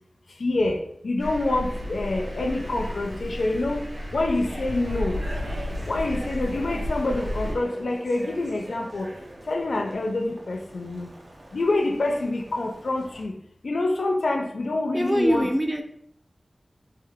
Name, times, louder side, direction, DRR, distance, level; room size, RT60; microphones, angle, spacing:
voice 1, 0.4-0.8 1.0-3.8 4.1-5.2 5.9-9.1 9.5-11.1 11.5-13.3 13.6-15.5, left 2 dB, 90° left, 4 dB, 0.4 m, -26 dB
Thunder, 1.2-7.5, left 1 dB, 80° right, 1.4 m, -32 dB
sound 1, 3.7-13.2, right 1 dB, 50° right, 0.7 m, -43 dB
voice 2, 14.9-15.8, equal, 10° right, 5 dB, 0.4 m, -23 dB
3.3 x 2.7 x 3.6 m, 0.70 s
wide cardioid pair, 80°, 0 cm